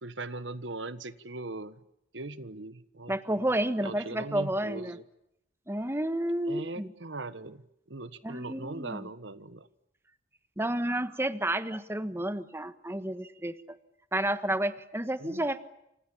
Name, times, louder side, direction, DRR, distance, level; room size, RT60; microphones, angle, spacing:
voice 1, 0.0-1.8 2.1-3.5 3.8-5.0 6.5-7.6 7.9-9.7 15.2-15.4, right 2 dB, 90° right, 13 dB, 1.5 m, -40 dB
voice 2, 3.1-5.0 5.7-6.9 8.2-9.0 10.6-13.5 14.1-15.6, right 1 dB, 15° right, 11 dB, 1.3 m, -31 dB
29.5 x 27.0 x 7.3 m, 0.81 s
head